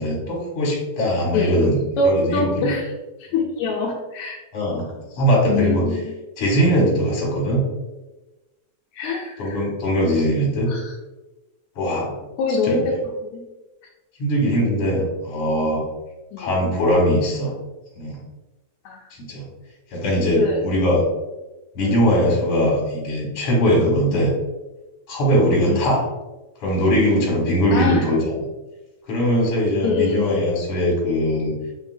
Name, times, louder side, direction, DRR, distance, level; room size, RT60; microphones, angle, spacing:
voice 1, 0.0-2.7 4.5-4.9 5.1-5.8 6.4-7.6 9.4-10.7 11.8-12.2 12.6-12.8 14.2-15.8 16.4-17.5 18.0-18.2 19.2-19.4 19.9-21.0 21.8-24.3 25.1-26.0 26.6-28.3 29.1-31.5, equal, 55° left, -3 dB, 2.2 m, -20 dB
voice 2, 2.0-2.8 3.3-4.4 5.5-6.1 8.9-9.6 10.7-10.9 12.4-13.0 13.3-13.4 16.3-16.5 18.9-19.0 20.3-20.6 21.8-22.0 24.1-24.2 25.7-25.8 27.7-28.1 29.8-30.3, left 4 dB, 80° left, -3 dB, 1.9 m, -24 dB
5.9 x 2.7 x 2.5 m, 1.1 s
omnidirectional pair, 3.4 m